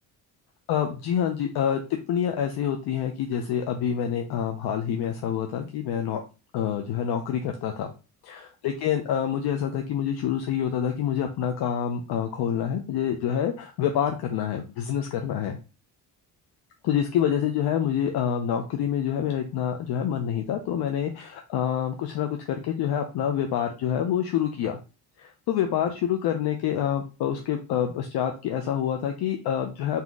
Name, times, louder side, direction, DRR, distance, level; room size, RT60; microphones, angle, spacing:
voice 1, 0.7-1.8 2.1-6.2 6.5-7.9 8.3-15.6 16.8-24.8 25.2-30.0, left 9 dB, 70° left, 4 dB, 0.7 m, -27 dB
4.1 x 2.8 x 3.6 m, 0.32 s
cardioid pair, 110°, 40 cm